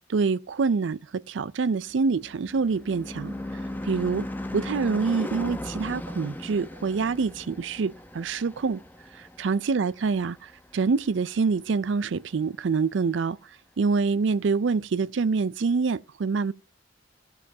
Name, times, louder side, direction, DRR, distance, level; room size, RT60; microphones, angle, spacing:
voice 1, 0.1-3.3 3.8-4.3 4.5-8.8 9.1-13.4 13.8-16.5, right 4 dB, 70° right, 0.4 m, -26 dB
Car passing by / Truck / Engine, 1.8-10.5, left 1 dB, 10° left, 0.9 m, -37 dB
16.0 x 6.5 x 2.7 m
head